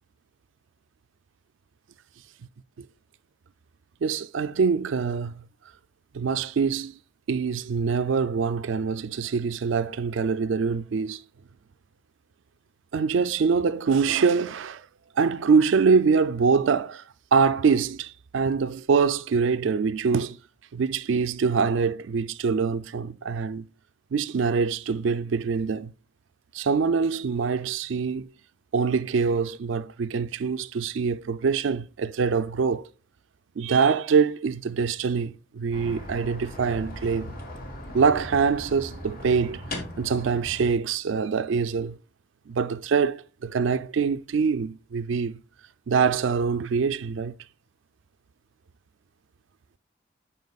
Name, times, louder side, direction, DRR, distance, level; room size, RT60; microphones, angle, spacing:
voice 1, 4.0-5.4 6.1-7.0 7.3-11.2 12.9-14.9 15.2-17.0 17.3-20.4 20.7-23.6 24.1-25.9 26.5-28.3 28.7-32.9 33.6-37.3 37.9-42.0 42.5-45.4 45.9-47.3, right 5 dB, 80° right, 0.4 m, -24 dB
sound 1, 35.7-40.7, left 1 dB, 45° left, 1.4 m, -38 dB
9.3 x 5.8 x 2.4 m
head